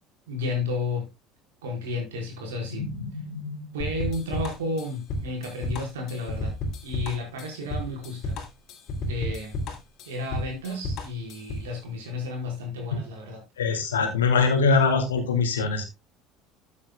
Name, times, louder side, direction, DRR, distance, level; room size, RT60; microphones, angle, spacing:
voice 1, 0.3-1.1 1.6-2.9 3.7-6.5 6.8-8.4 9.0-9.6 10.0-13.5, left 2 dB, 70° right, 4.8 m, -32 dB
voice 2, 2.7-3.6 13.6-15.9, left 4 dB, 75° left, 2.5 m, -23 dB
sound 1, 3.8-11.7, left 1 dB, 50° left, 2.8 m, -32 dB
13.0 x 8.6 x 2.3 m
figure-of-eight pair, 65°, 0 cm